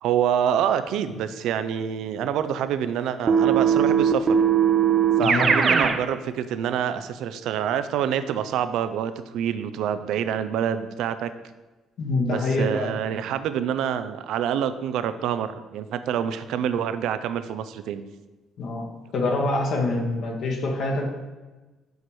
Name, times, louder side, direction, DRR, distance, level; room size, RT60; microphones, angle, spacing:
voice 1, 0.0-4.4 5.2-11.3 12.3-18.0, right 9 dB, 75° right, 11 dB, 0.5 m, -26 dB
Keyboard (musical), 3.3-6.0, right 7 dB, 35° right, 0.6 m, -19 dB
voice 2, 12.0-12.9 18.6-21.1, left 2 dB, 60° left, 0 dB, 1.4 m, -25 dB
7.1 x 4.8 x 6.1 m, 1.2 s
cardioid pair, 125°, 0 cm